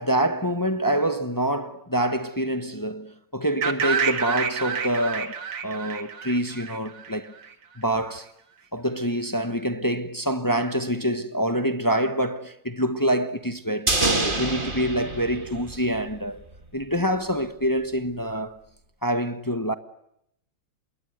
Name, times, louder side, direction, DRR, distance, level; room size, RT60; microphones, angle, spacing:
voice 1, 0.0-7.3 7.8-8.3 8.7-16.4 16.7-18.6 19.0-19.7, right 1 dB, 15° left, 0.6 m, -26 dB
the light, 3.6-7.5, right 7 dB, 80° right, 2.7 m, -29 dB
sound 1, 13.9-16.3 16.5-16.6, right 2 dB, 25° right, 2.8 m, -27 dB
27.0 x 22.0 x 9.4 m
omnidirectional pair, 2.4 m